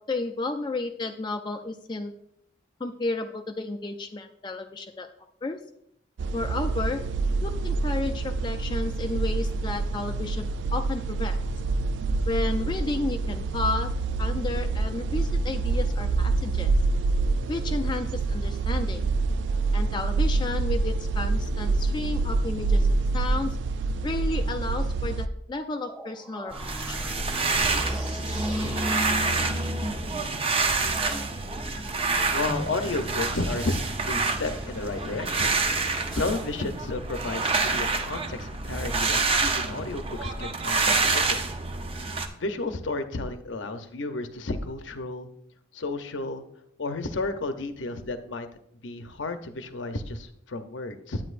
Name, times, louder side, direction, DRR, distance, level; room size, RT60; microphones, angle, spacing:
voice 1, 0.0-2.1 2.8-5.1 5.4-5.6 6.3-7.0 7.4-11.4 12.3-13.9 14.2-16.7 17.5-19.0 19.7-22.9 23.1-23.6 24.0-26.5 26.9-27.0, left 3 dB, 25° left, 6 dB, 0.4 m, -32 dB
sound 1, 6.2-25.3, right 3 dB, 70° right, 0.4 m, -26 dB
sound 2, 25.8-36.3, equal, 10° right, 1.2 m, -41 dB
sound 3, 26.5-42.3, right 3 dB, 30° right, 0.7 m, -27 dB
voice 2, 32.1-33.8 34.1-35.6 36.1-41.4 42.4-45.3 45.7-46.4 46.8-48.5 48.8-51.2, left 2 dB, 80° left, 8 dB, 0.7 m, -32 dB
10.0 x 8.8 x 2.5 m, 0.71 s
head